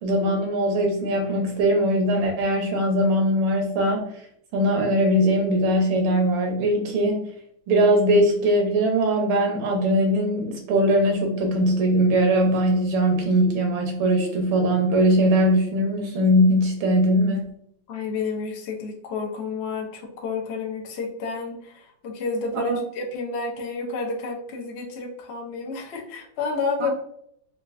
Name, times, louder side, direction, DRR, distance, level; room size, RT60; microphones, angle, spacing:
voice 1, 0.0-4.1 4.5-7.2 7.7-17.4 22.5-22.8 26.8-26.9, equal, 85° right, 2 dB, 1.7 m, -21 dB
voice 2, 17.9-26.9, left 4 dB, 90° left, 0 dB, 0.5 m, -30 dB
4.4 x 2.4 x 2.5 m, 0.68 s
omnidirectional pair, 2.2 m